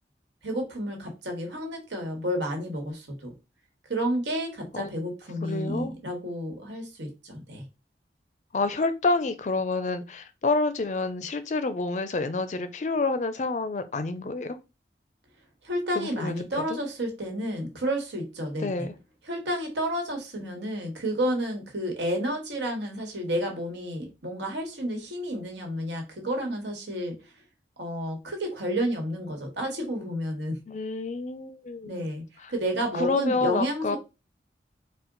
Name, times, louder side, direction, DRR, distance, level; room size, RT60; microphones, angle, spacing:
voice 1, 0.4-3.3 3.9-7.6 15.6-18.9 19.2-27.2 27.8-30.6 31.9-34.0, equal, 85° right, 1.4 m, -31 dB
voice 2, 5.4-5.9 8.5-14.6 16.0-16.4 16.7-16.8 18.6-18.9 30.7-32.1 32.4-32.5 33.0-34.0, left 3 dB, 45° left, 0.4 m, -28 dB
4.3 x 2.1 x 3.9 m
head